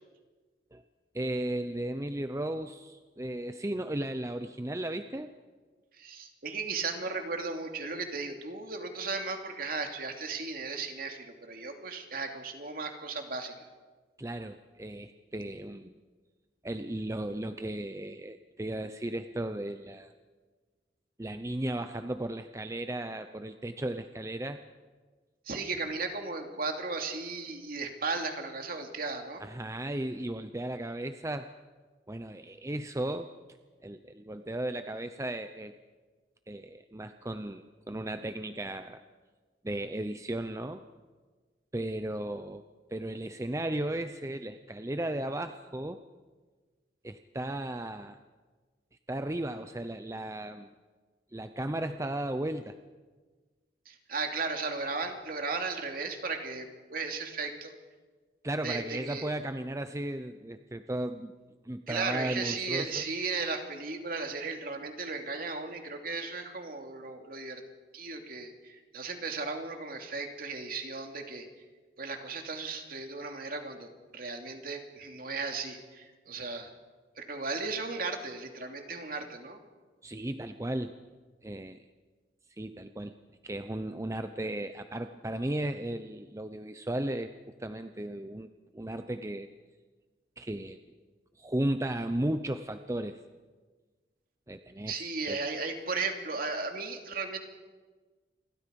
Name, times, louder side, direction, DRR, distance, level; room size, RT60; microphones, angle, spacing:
voice 1, 1.1-5.3 14.2-15.9 16.6-20.1 21.2-24.6 29.4-31.5 32.1-33.3 33.8-35.7 36.5-39.0 39.6-40.8 41.7-42.6 42.9-46.0 47.0-48.2 49.1-50.7 51.3-52.8 58.4-61.3 61.6-63.0 80.0-81.0 81.4-81.8 82.6-83.1 83.4-87.3 87.6-88.5 88.7-89.5 90.4-90.8 91.4-93.2 94.5-95.0 95.3-95.4, right 1 dB, 15° right, 9 dB, 0.6 m, -35 dB
voice 2, 6.0-13.5 25.5-29.4 53.9-57.7 58.6-59.3 61.9-67.6 67.9-71.5 72.0-76.7 77.2-79.6 94.9-97.4, right 4 dB, 50° right, 4 dB, 2.8 m, -36 dB
28.5 x 23.0 x 5.3 m, 1.4 s
head